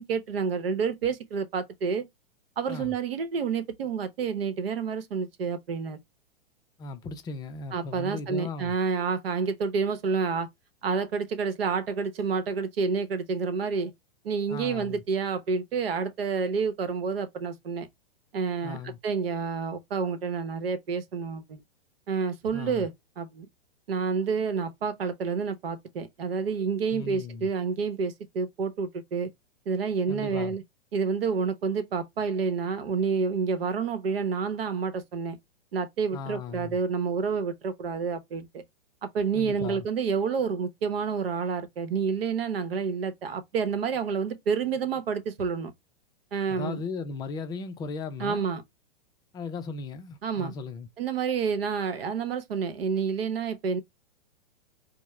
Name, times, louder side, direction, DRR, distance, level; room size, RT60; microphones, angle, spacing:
voice 1, 0.0-2.0 2.6-6.0 7.7-10.5 10.8-13.9 14.2-17.9 18.3-21.6 22.1-23.5 23.9-29.3 29.7-30.6 30.9-35.4 35.7-38.6 39.0-45.7 46.3-46.8 48.2-48.6 50.2-50.5 51.0-53.8, right 5 dB, 75° right, 0.9 m, -29 dB
voice 2, 6.8-8.8 14.5-15.0 18.6-19.0 22.5-22.9 26.9-27.5 30.1-30.6 36.1-36.8 39.3-39.9 46.5-48.4 49.3-50.9, left 4 dB, 15° left, 0.4 m, -37 dB
4.5 x 2.1 x 3.1 m
hypercardioid pair, 125°, 29 cm